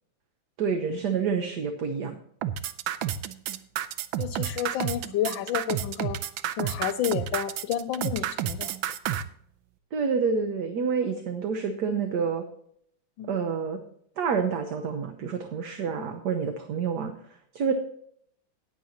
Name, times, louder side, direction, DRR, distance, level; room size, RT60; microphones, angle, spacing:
voice 1, 0.6-2.2 9.9-12.4 13.3-13.8 14.2-17.1 17.5-17.7, right 6 dB, 65° right, 7 dB, 1.4 m, -28 dB
sound 1, 2.4-9.2, right 11 dB, 85° right, 1.4 m, -30 dB
voice 2, 4.2-6.2 6.6-8.8 13.2-13.4, left 10 dB, 85° left, 11 dB, 1.4 m, -30 dB
18.0 x 7.8 x 2.8 m, 0.66 s
omnidirectional pair, 2.1 m